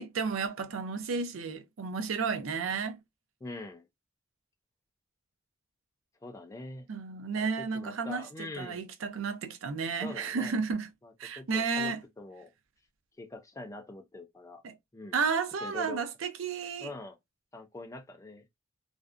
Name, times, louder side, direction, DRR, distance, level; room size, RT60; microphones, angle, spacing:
voice 1, 0.0-3.0 6.9-10.9 11.2-12.0 14.6-14.7 15.1-16.9, right 5 dB, 75° right, 0.5 m, -32 dB
voice 2, 3.4-3.9 6.2-6.9 7.3-8.8 10.0-10.5 11.0-12.5 13.2-14.6 14.9-15.2 15.6-16.0 16.8-17.2 17.5-18.5, left 2 dB, 15° left, 0.4 m, -43 dB
2.5 x 2.1 x 2.4 m
head